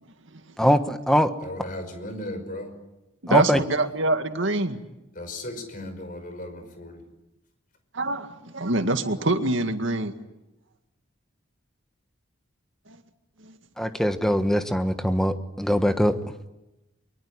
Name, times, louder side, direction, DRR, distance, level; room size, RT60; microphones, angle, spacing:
voice 1, 0.6-1.3 3.3-3.6 13.8-16.2, equal, ahead, 8 dB, 1.3 m, -22 dB
voice 2, 1.4-2.7 3.5-3.6 5.2-7.0, left 1 dB, 45° left, 8 dB, 5.5 m, -36 dB
voice 3, 3.2-4.8 7.9-10.1 12.9-13.0 13.4-13.6, right 2 dB, 75° right, 7 dB, 2.1 m, -25 dB
24.0 x 23.5 x 9.9 m, 0.96 s
head